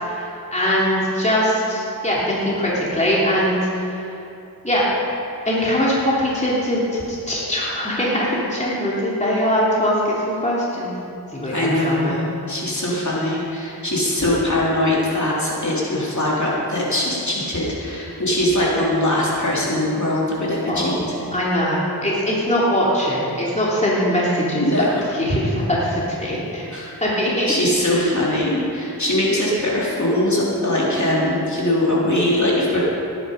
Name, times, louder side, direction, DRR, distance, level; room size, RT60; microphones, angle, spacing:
voice 1, 0.0-4.0 4.6-4.8 5.5-10.9 11.3-12.2 20.7-20.9 21.3-24.9 25.2-26.6 27.0-27.5 27.9-28.0, equal, 15° left, -6 dB, 3.0 m, -21 dB
voice 2, 11.5-21.2 24.6-24.9 26.7-26.9 27.5-32.8, left 1 dB, 45° left, -6 dB, 3.4 m, -21 dB
17.5 x 9.9 x 5.2 m, 2.7 s
wide cardioid pair, 65°, 40 cm